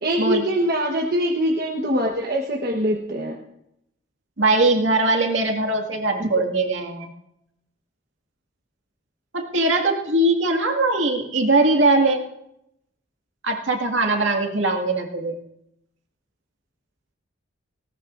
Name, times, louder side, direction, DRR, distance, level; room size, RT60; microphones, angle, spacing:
voice 1, 0.0-3.4 6.2-6.3, equal, 45° right, 0 dB, 1.2 m, -23 dB
voice 2, 4.4-7.1 9.3-12.2 13.4-15.4, right 2 dB, 65° right, 2 dB, 2.1 m, -21 dB
19.0 x 18.0 x 2.6 m, 0.80 s
head